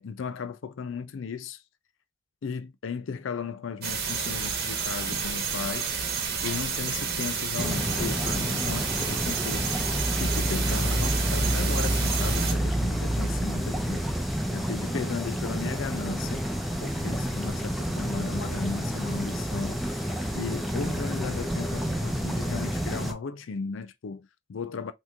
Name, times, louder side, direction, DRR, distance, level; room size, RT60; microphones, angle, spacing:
voice 1, 0.0-1.6 2.4-5.9 6.4-9.8 10.2-14.1 14.5-16.5 16.8-19.8 20.3-24.9, left 5 dB, 75° left, 0.4 m, -36 dB
sound 1, 3.8-12.5, right 6 dB, 50° right, 1.0 m, -30 dB
sound 2, 7.6-23.1, equal, ahead, 0.5 m, -29 dB
3.5 x 3.0 x 2.4 m
head